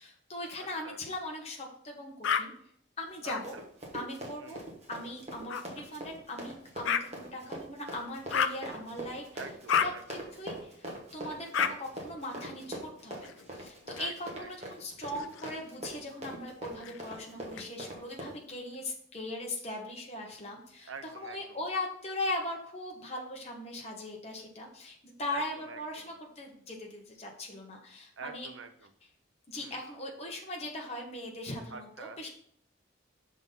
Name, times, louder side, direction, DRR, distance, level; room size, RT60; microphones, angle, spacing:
voice 1, 0.0-2.5 3.0-3.6 3.9-4.6 4.9-9.2 9.8-28.5 29.5-32.3, left 1 dB, 30° left, 0 dB, 1.2 m, -39 dB
voice 2, 0.6-1.0 3.2-3.7 4.4-4.7 9.3-10.3 14.0-14.7 20.9-21.6 25.3-26.1 28.2-28.9 29.6-29.8 31.7-32.2, right 5 dB, 75° right, 8 dB, 0.7 m, -47 dB
sound 1, 2.2-2.4 3.3-3.4 5.5-5.6 6.8-7.0 8.3-8.6 9.7-9.9 11.5-11.7 13.2-14.0 15.0-15.9 16.8-17.7, left 7 dB, 75° left, 0.4 m, -31 dB
Run, 3.1-18.4, right 1 dB, 35° right, 1.3 m, -43 dB
6.1 x 3.8 x 5.4 m, 0.64 s
head